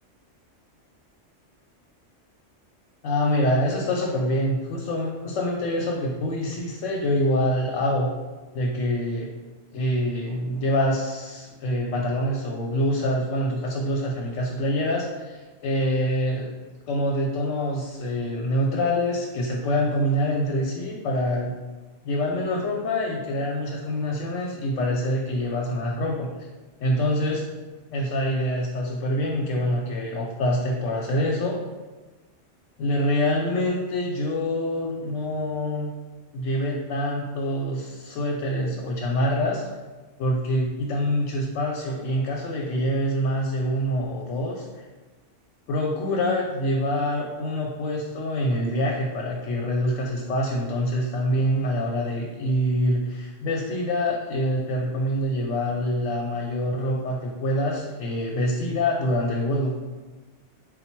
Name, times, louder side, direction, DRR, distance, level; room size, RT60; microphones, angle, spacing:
voice 1, 3.0-8.1 8.5-9.3 9.7-16.5 16.9-21.5 22.0-26.3 26.8-27.4 27.9-31.6 32.8-35.9 36.3-39.6 40.2-44.7 45.7-59.8, equal, 85° left, -1 dB, 1.0 m, -25 dB
3.8 x 2.2 x 4.3 m, 1.3 s
omnidirectional pair, 1.3 m